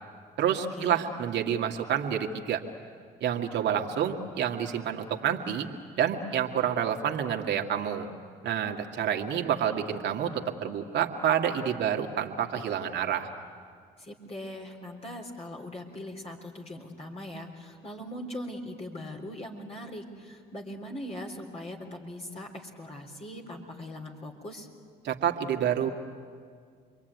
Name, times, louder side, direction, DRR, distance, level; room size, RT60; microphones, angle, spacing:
voice 1, 0.4-2.6 3.2-5.7 6.0-8.1 8.4-13.3 25.0-25.9, right 9 dB, 60° right, 2 dB, 2.2 m, -28 dB
voice 2, 14.0-24.7, left 1 dB, 30° left, 0 dB, 3.6 m, -40 dB
27.5 x 22.5 x 9.4 m, 2.1 s
supercardioid pair, 70°, 20 cm